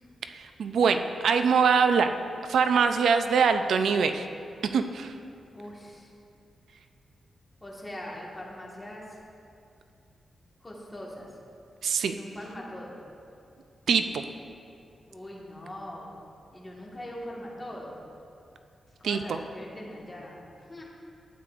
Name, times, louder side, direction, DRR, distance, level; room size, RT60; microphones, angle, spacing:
voice 1, 0.3-2.1 2.5-4.3 4.7-5.1 11.8-12.1 13.9-14.2 19.0-19.4, right 6 dB, 80° right, 8 dB, 0.3 m, -23 dB
voice 2, 5.5-6.1 7.6-9.2 10.6-11.3 12.1-13.0 15.1-16.1 16.5-18.0 19.0-20.8, left 1 dB, 15° left, -4 dB, 1.4 m, -41 dB
12.0 x 8.5 x 2.4 m, 2.5 s
wide cardioid pair, 135°, 0 cm